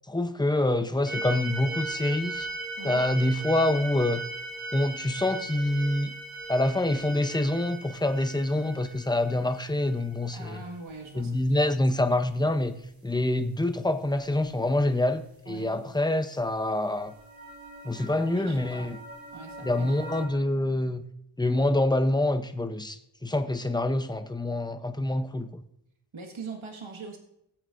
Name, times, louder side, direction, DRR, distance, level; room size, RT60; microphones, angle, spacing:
voice 1, 0.1-2.5 2.8-4.2 4.7-6.1 6.5-10.6 11.2-12.7 13.0-17.1 17.8-19.0 19.6-21.0 21.4-25.5, left 1 dB, 10° left, 8 dB, 0.8 m, -26 dB
sound 1, 1.1-10.6 16.7-20.3, right 2 dB, 25° right, 4.2 m, -38 dB
voice 2, 2.8-3.1 10.3-11.4 15.5-15.7 18.2-19.0 19.3-20.0 26.1-27.2, right 4 dB, 75° right, 2 dB, 1.9 m, -42 dB
20.0 x 8.0 x 2.6 m, 0.80 s
wide cardioid pair, 100°, 49 cm